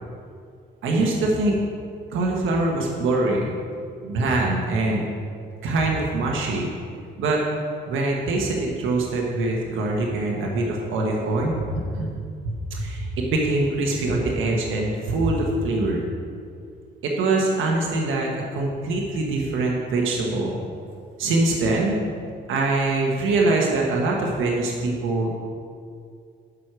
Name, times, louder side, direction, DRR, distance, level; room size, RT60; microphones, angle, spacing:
voice 1, 0.8-1.6 2.1-3.5 4.0-5.0 5.6-6.7 7.2-7.4 7.9-12.1 12.4-16.1 17.0-20.6 21.2-22.0 22.5-25.4, right 2 dB, 80° right, -1 dB, 1.5 m, -23 dB
11.5 x 4.9 x 6.1 m, 2.3 s
cardioid pair, 90°, 20 cm